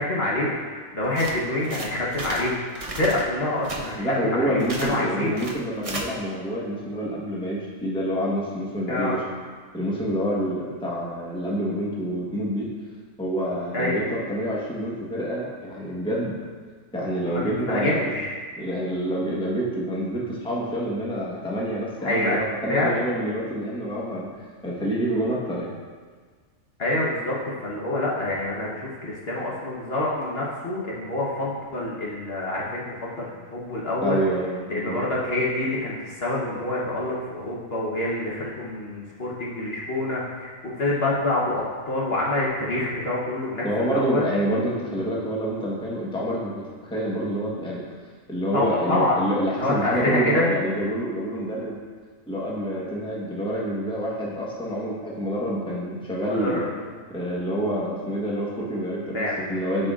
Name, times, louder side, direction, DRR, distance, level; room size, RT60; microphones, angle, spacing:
voice 1, 0.0-5.4 8.9-9.2 13.7-14.0 17.3-18.4 22.0-22.4 22.7-23.0 26.8-34.2 34.7-44.3 48.5-49.2 49.5-50.5 56.3-56.9 59.1-59.6, left 1 dB, 50° left, -5 dB, 1.3 m, -26 dB
sound 1, 1.0-2.5 2.7-3.2 3.6-3.9 4.6-5.0 5.3-6.0, right 2 dB, 35° right, 0.7 m, -34 dB
voice 2, 4.0-9.2 9.7-12.7 13.2-16.3 16.9-18.1 18.6-24.3 24.6-25.7 34.0-35.0 43.6-47.8 48.3-51.8 52.3-56.7 57.1-59.9, equal, 5° left, -5 dB, 1.1 m, -27 dB
11.5 x 5.2 x 2.5 m, 1.5 s
omnidirectional pair, 1.4 m